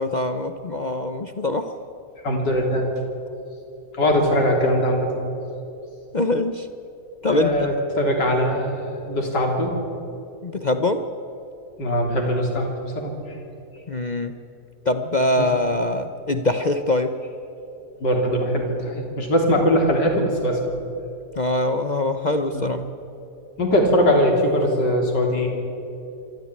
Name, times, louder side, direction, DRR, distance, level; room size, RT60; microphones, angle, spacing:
voice 1, 0.0-1.7 6.1-6.7 7.2-7.7 10.4-11.0 13.9-14.4 14.8-17.2 21.4-22.8, left 2 dB, 40° left, 8 dB, 0.6 m, -23 dB
voice 2, 2.2-2.8 3.9-5.1 7.3-9.7 11.8-13.4 15.4-15.5 18.0-20.6 22.5-22.7 23.6-25.5, equal, 85° left, 1 dB, 4.0 m, -21 dB
25.0 x 13.5 x 9.6 m, 2.8 s
omnidirectional pair, 1.8 m